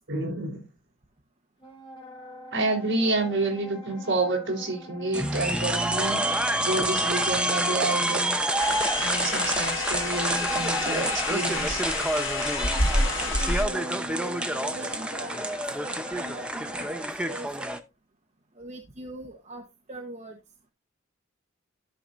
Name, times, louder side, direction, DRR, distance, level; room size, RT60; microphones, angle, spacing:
voice 1, 0.1-0.7 2.5-6.2 6.6-11.8, right 2 dB, 60° right, 3.7 m, -29 dB
Wind instrument woodwind instrument, 1.6-17.1, left 2 dB, 25° left, 3.9 m, -43 dB
sound 1, 5.1-17.8, right 1 dB, 5° right, 0.7 m, -28 dB
sound 2, 8.6-13.6, left 2 dB, 80° left, 2.4 m, -29 dB
voice 2, 12.6-17.7 18.6-20.4, right 1 dB, 35° right, 1.1 m, -41 dB
13.0 x 5.9 x 2.6 m
head